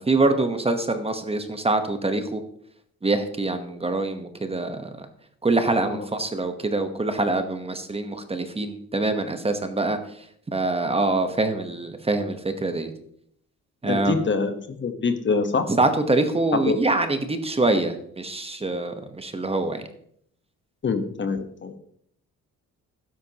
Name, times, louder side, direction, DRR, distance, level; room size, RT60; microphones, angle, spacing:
voice 1, 0.0-2.4 3.0-5.1 5.4-10.0 10.5-12.9 13.8-14.2 15.7-19.8, right 2 dB, 20° right, 7 dB, 1.1 m, -24 dB
voice 2, 13.8-15.6 16.7-16.8 20.8-21.8, left 4 dB, 40° left, 8 dB, 1.2 m, -25 dB
12.0 x 9.7 x 3.0 m, 0.68 s
cardioid pair, 90°, 30 cm